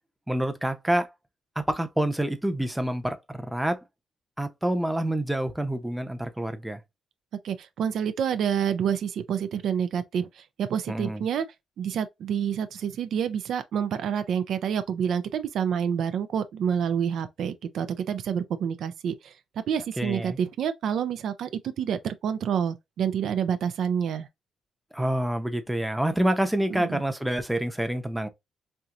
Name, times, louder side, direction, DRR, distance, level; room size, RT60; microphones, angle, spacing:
voice 1, 0.3-1.1 1.6-3.8 4.4-6.8 10.9-11.2 20.0-20.4 24.9-28.3, right 1 dB, 5° right, 0.7 m, -27 dB
voice 2, 7.4-11.5 11.8-19.3 19.7-24.3 26.7-27.0, right 8 dB, 70° right, 0.5 m, -28 dB
4.4 x 2.7 x 2.5 m
cardioid pair, 90°, 0 cm